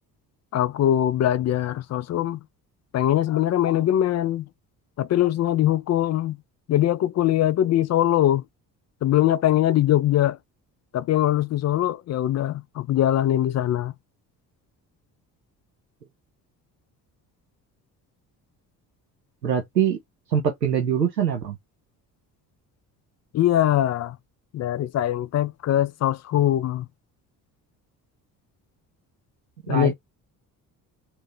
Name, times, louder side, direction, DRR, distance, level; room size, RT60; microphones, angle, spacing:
voice 1, 0.5-2.4 2.9-4.5 5.0-6.4 6.7-8.4 9.0-10.4 10.9-13.9 23.3-24.2 24.5-26.8 29.7-29.9, left 12 dB, 35° left, 0.5 m, -22 dB
voice 2, 19.4-20.0 20.3-21.6 29.7-29.9, right 8 dB, 90° right, 0.7 m, -23 dB
3.6 x 2.9 x 3.3 m
figure-of-eight pair, 50°, 49 cm